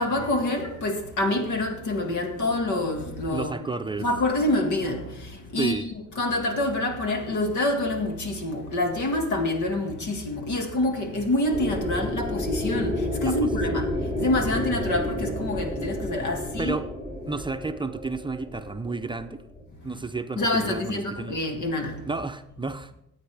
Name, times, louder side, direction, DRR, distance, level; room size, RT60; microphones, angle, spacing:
voice 1, 0.0-3.5 4.0-16.7 20.4-22.0, left 1 dB, 75° left, 2.0 m, -27 dB
voice 2, 3.3-4.1 5.6-5.9 13.2-13.4 13.7-13.8 16.6-16.9 17.3-19.4 19.8-21.4 22.1-23.0, right 3 dB, 15° right, 0.6 m, -31 dB
sound 1, 11.5-19.6, left 1 dB, 20° left, 3.0 m, -31 dB
16.0 x 8.7 x 3.5 m
cardioid pair, 90°, 30 cm